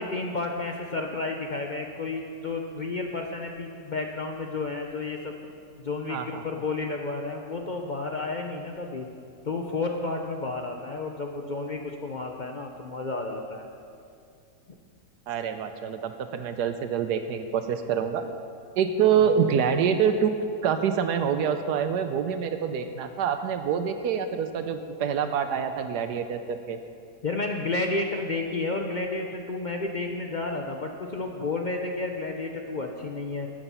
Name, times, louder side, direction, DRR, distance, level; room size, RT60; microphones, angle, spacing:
voice 1, 0.0-5.4 5.8-9.1 9.4-13.7 27.2-33.5, left 3 dB, 75° left, 2 dB, 0.4 m, -31 dB
voice 2, 6.1-6.4 15.3-18.3 18.8-20.3 20.6-26.8, right 7 dB, 75° right, 8 dB, 1.2 m, -26 dB
13.0 x 8.9 x 5.5 m, 2.4 s
omnidirectional pair, 1.8 m